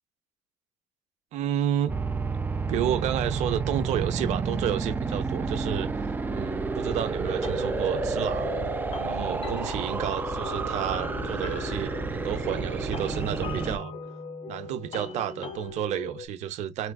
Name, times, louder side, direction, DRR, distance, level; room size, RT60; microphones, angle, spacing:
voice 1, 1.3-2.0 2.7-5.9 6.3-8.6 9.0-13.9 14.5-16.9, right 10 dB, 70° right, 0.7 m, -31 dB
sound 1, 1.9-13.8, right 4 dB, 15° right, 0.5 m, -30 dB
sound 2, 7.3-16.3, left 4 dB, 50° left, 0.8 m, -40 dB
4.3 x 2.5 x 2.3 m
cardioid pair, 130°, 12 cm